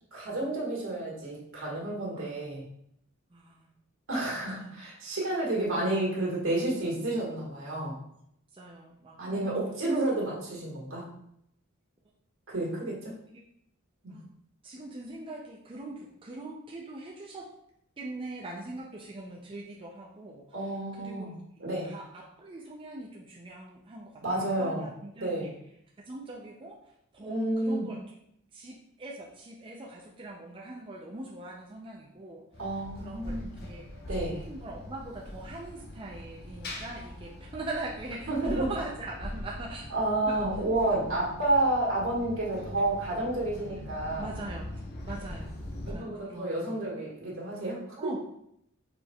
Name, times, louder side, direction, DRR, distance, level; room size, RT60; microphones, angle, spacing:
voice 1, 0.1-2.6 4.1-8.0 9.2-11.1 12.5-13.1 14.0-14.2 20.5-21.3 21.6-21.9 24.2-24.9 25.2-25.5 27.3-27.9 32.6-33.5 34.1-34.4 38.3-38.6 39.9-44.2 45.9-48.2, right 2 dB, 65° right, -5 dB, 1.7 m, -30 dB
voice 2, 3.3-3.7 4.5-4.7 8.5-9.6 14.1-14.2 14.6-17.5 18.0-20.5 20.9-21.3 21.8-25.5 26.0-26.8 27.1-28.0 28.5-32.4 33.0-33.8 34.1-39.9 40.3-40.4 44.2-45.6 45.9-46.8 48.0-48.2, right 2 dB, 25° right, -2 dB, 0.5 m, -42 dB
sound 1, 32.5-45.9, left 1 dB, 50° left, 0.7 m, -42 dB
5.1 x 4.4 x 2.3 m, 0.73 s
head